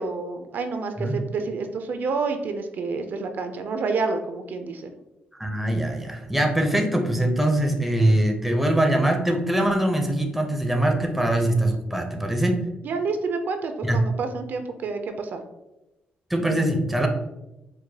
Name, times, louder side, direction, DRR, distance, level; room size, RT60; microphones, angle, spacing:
voice 1, 0.0-4.9 12.8-15.4, right 4 dB, 60° right, 7 dB, 0.4 m, -29 dB
voice 2, 5.4-12.6 13.8-14.1 16.3-17.1, right 1 dB, 5° right, 3 dB, 0.5 m, -22 dB
4.5 x 2.1 x 2.7 m, 0.97 s
cardioid pair, 120°, 4 cm